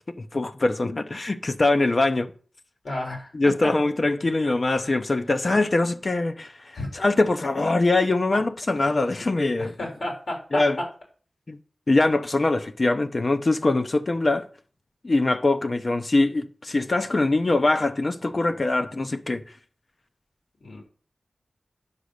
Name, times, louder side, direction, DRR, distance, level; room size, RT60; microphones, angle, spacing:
voice 1, 0.1-2.3 3.3-9.7 10.5-10.8 11.5-11.6 11.9-14.5 15.0-19.4, left 2 dB, 50° left, 0.7 m, -23 dB
voice 2, 2.8-3.3 3.6-3.7 6.7-6.9 8.8-8.9 9.6-10.6 20.6-20.8, left 1 dB, 80° left, 4.1 m, -32 dB
9.9 x 5.1 x 6.5 m
wide cardioid pair, 80°, 0 cm